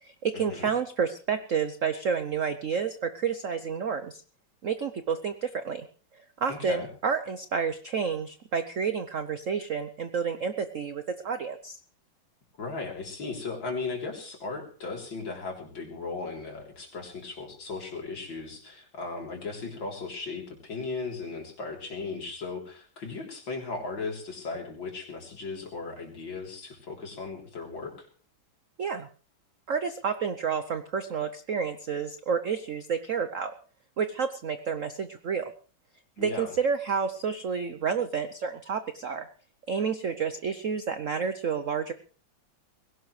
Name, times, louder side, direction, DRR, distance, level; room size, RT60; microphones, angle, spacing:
voice 1, 0.0-4.2 4.6-5.8 6.4-11.8 28.8-29.1 29.7-33.5 34.0-35.5 36.2-39.3 39.7-41.9, right 6 dB, 60° right, 10 dB, 0.8 m, -30 dB
voice 2, 6.5-6.9 12.6-27.9 36.2-36.5, left 3 dB, 60° left, 1 dB, 4.3 m, -37 dB
21.0 x 17.5 x 3.3 m, 0.41 s
omnidirectional pair, 2.3 m